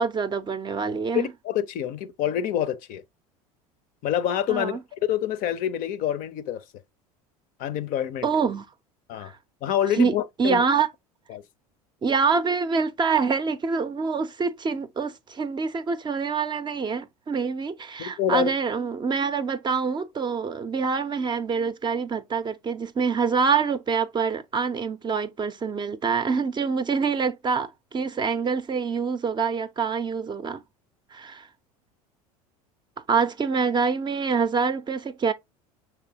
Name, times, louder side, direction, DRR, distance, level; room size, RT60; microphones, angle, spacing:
voice 1, 0.0-1.3 4.5-4.8 8.2-8.6 9.2-9.4 9.9-10.9 12.0-30.6 31.1-31.5 33.1-35.3, right 5 dB, 25° right, 0.5 m, -26 dB
voice 2, 1.1-3.0 4.0-6.6 7.6-8.3 9.1-9.3 9.6-10.6 11.3-11.4 18.0-18.5, left 10 dB, 50° left, 0.5 m, -27 dB
5.9 x 3.3 x 2.7 m
hypercardioid pair, 75°, 19 cm